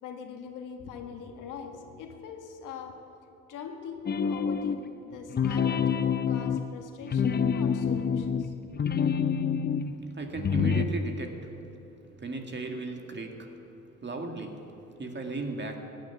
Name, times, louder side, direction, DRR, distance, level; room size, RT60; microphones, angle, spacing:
voice 1, 0.0-3.0 3.5-8.5, left 6 dB, 85° left, 4 dB, 1.7 m, -42 dB
sound 1, 4.1-4.9 5.3-9.9 10.3-10.9, left 6 dB, 30° left, 0.7 m, -27 dB
voice 2, 9.8-11.7 12.2-13.6 14.0-15.8, right 2 dB, 35° right, 4 dB, 2.1 m, -36 dB
15.5 x 9.4 x 9.2 m, 3.0 s
cardioid pair, 70°, 31 cm